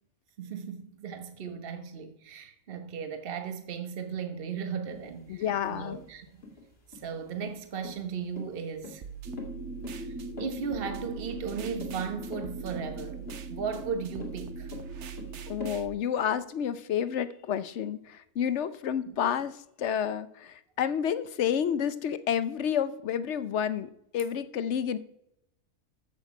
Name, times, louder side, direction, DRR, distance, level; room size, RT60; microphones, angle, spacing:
voice 1, 0.4-5.4 5.7-6.4 6.9-9.0 10.4-14.7 19.0-19.2, right 6 dB, 45° right, 1.3 m, -36 dB
sound 1, 4.9-15.8, left 3 dB, 45° left, 2.2 m, -44 dB
voice 2, 5.3-6.0 15.5-25.0, left 8 dB, 60° left, 1.0 m, -30 dB
sound 2, 9.0-15.9, right 9 dB, 60° right, 1.0 m, -43 dB
sound 3, 9.2-15.7, left 1 dB, 10° right, 1.0 m, -42 dB
14.0 x 6.3 x 5.8 m
omnidirectional pair, 1.4 m